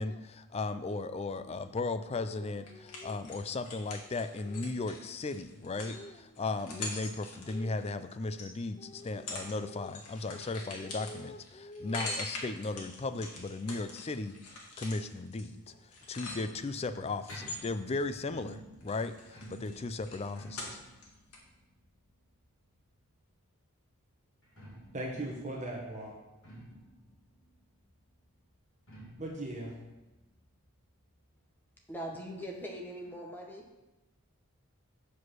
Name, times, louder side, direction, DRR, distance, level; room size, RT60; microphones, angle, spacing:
voice 1, 0.0-14.4 14.8-15.7 16.1-20.8, left 3 dB, 30° left, 11 dB, 0.4 m, -36 dB
sound 1, 2.7-8.5 9.0-9.6 9.8-16.8 17.2-18.5 18.8-21.1 21.3-21.4, left 2 dB, 90° left, 1.8 m, -43 dB
sound 2, 15.5-23.2 24.3-31.7 31.9-32.0 32.3-32.4 33.0-33.1, right 1 dB, 65° left, 3.3 m, -54 dB
voice 2, 24.9-26.1 29.2-29.7, right 1 dB, 35° right, -1 dB, 1.5 m, -38 dB
voice 3, 31.9-33.6, equal, 10° left, 0 dB, 1.2 m, -41 dB
8.1 x 4.9 x 6.2 m, 1.0 s
head